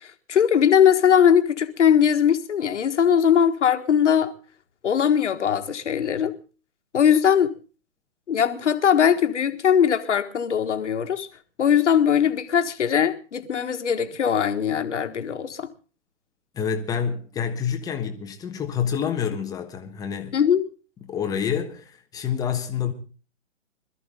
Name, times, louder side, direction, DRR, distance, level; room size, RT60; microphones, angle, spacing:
voice 1, 0.3-4.3 4.8-6.3 6.9-7.5 8.3-11.3 11.6-15.7 20.3-20.6, left 8 dB, 60° left, 1.8 m, -20 dB
voice 2, 16.5-20.4 21.0-22.9, left 7 dB, 10° left, 1.2 m, -28 dB
22.0 x 13.5 x 3.8 m
hypercardioid pair, 140°, 39 cm